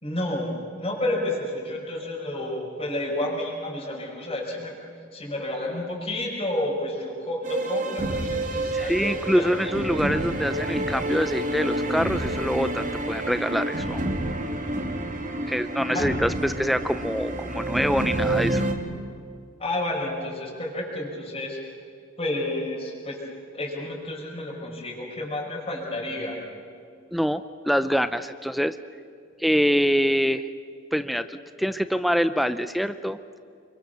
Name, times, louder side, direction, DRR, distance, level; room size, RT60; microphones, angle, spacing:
voice 1, 0.0-4.8 5.1-9.5 15.9-16.1 19.6-21.6 22.2-23.2 23.5-26.4, left 1 dB, 30° left, -3 dB, 5.7 m, -30 dB
sound 1, 7.4-18.7, right 1 dB, 40° right, 2.6 m, -28 dB
voice 2, 8.7-14.0 15.5-18.6 27.1-28.8 29.4-30.5 30.9-33.2, equal, ahead, 11 dB, 0.5 m, -25 dB
29.5 x 23.0 x 6.9 m, 2.4 s
head